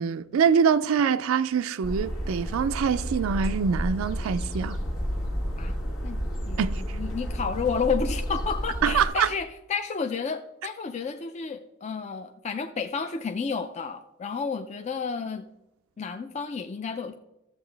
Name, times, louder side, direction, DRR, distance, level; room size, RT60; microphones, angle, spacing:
voice 1, 0.0-4.8 6.6-7.0 8.8-9.3, right 7 dB, 70° right, 0.3 m, -24 dB
sound 1, 1.8-9.1, equal, 75° left, 1.6 m, -31 dB
voice 2, 6.5-15.4 16.0-17.1, left 5 dB, 35° left, 0.4 m, -31 dB
12.5 x 7.9 x 3.3 m
head